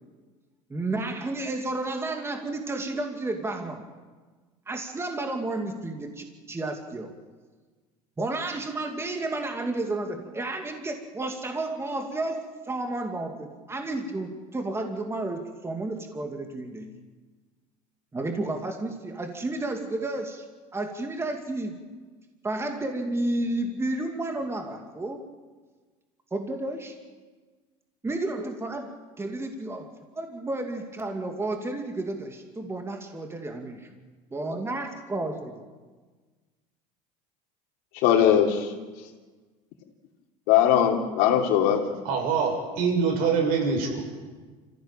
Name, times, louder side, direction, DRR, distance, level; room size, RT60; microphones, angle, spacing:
voice 1, 0.7-3.8 4.7-7.1 8.2-16.9 18.1-20.4 20.7-21.8 22.4-25.2 26.3-26.9 28.0-33.8 34.3-35.5, right 2 dB, 15° right, 4 dB, 2.4 m, -31 dB
voice 2, 38.0-38.7 40.5-41.8, left 10 dB, 70° left, 2 dB, 3.1 m, -20 dB
voice 3, 42.1-44.0, right 5 dB, 65° right, 2 dB, 7.0 m, -24 dB
25.0 x 15.5 x 9.0 m, 1.4 s
supercardioid pair, 110°, 16 cm